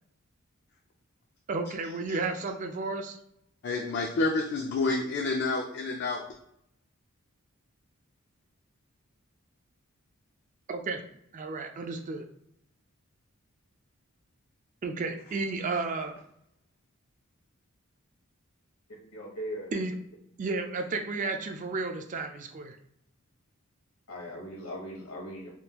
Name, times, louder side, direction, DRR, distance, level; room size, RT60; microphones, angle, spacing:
voice 1, 1.5-3.2 10.7-11.0 11.3-12.3 14.8-16.1 19.7-20.0 20.4-22.8, right 3 dB, 35° right, 6 dB, 0.3 m, -32 dB
voice 2, 3.6-6.2, left 3 dB, 50° left, 1 dB, 0.4 m, -29 dB
voice 3, 19.1-19.7 24.1-25.5, equal, 75° left, -2 dB, 1.2 m, -39 dB
3.5 x 2.3 x 2.8 m, 0.74 s
head